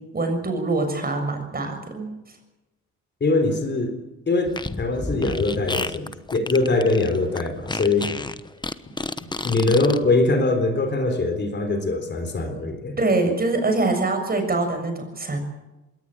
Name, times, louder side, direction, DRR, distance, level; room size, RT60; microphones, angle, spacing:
voice 1, 0.1-2.1 13.0-15.4, right 2 dB, 30° right, 5 dB, 6.7 m, -24 dB
voice 2, 3.2-4.0 4.3-8.1 9.2-13.0, left 2 dB, 35° left, 6 dB, 3.9 m, -22 dB
Fart, 4.5-10.0, left 3 dB, 15° left, 1.1 m, -30 dB
21.0 x 18.0 x 8.7 m, 1.0 s
cardioid pair, 90°, 30 cm